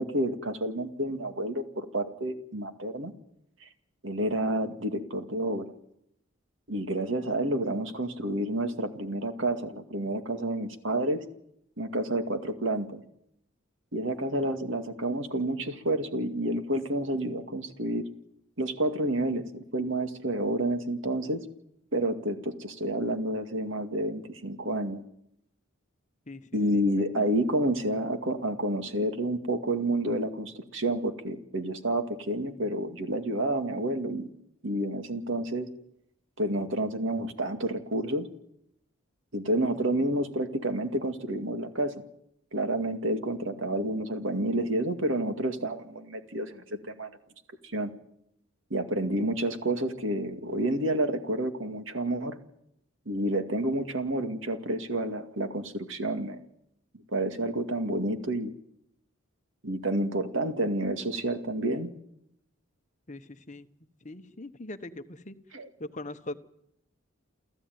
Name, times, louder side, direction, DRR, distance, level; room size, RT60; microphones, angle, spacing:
voice 1, 0.0-3.1 3.6-3.7 4.0-5.7 6.7-11.2 11.8-13.0 13.9-18.1 18.6-21.5 21.9-25.0 26.5-34.3 34.6-35.7 36.4-38.3 39.3-41.9 42.5-47.1 47.7-47.9 48.7-52.4 53.1-56.4 57.1-58.5 59.6-61.9 65.5-65.7, right 1 dB, 70° right, 7 dB, 2.2 m, -29 dB
voice 2, 63.1-63.7 64.0-65.3 65.8-66.3, left 2 dB, 35° left, 10 dB, 1.0 m, -40 dB
29.5 x 14.0 x 9.4 m, 0.79 s
head